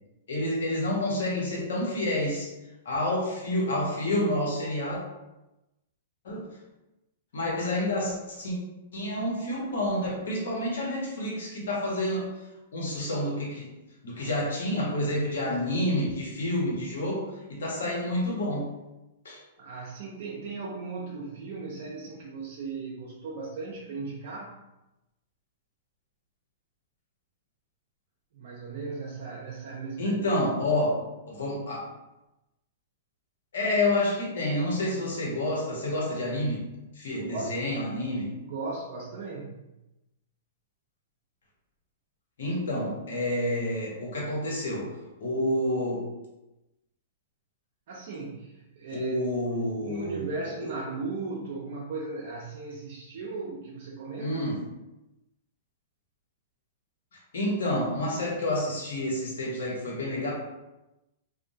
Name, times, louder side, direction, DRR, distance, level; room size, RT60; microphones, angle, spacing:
voice 1, 0.3-2.5 2.8-5.0 6.2-6.5 7.3-8.6 8.9-12.3 12.7-13.7 14.0-18.7 19.2-19.4 30.0-31.9 33.5-36.7 36.9-38.3 42.4-44.9 45.2-46.0 48.9-50.7 54.2-54.6 57.3-60.3, left 1 dB, 75° left, -3 dB, 0.9 m, -29 dB
voice 2, 19.6-24.5 28.3-30.2 37.2-37.8 38.4-39.5 47.9-49.2 49.8-54.4, right 3 dB, 60° right, -4 dB, 0.4 m, -37 dB
2.5 x 2.0 x 2.6 m, 0.97 s
hypercardioid pair, 120°, 0 cm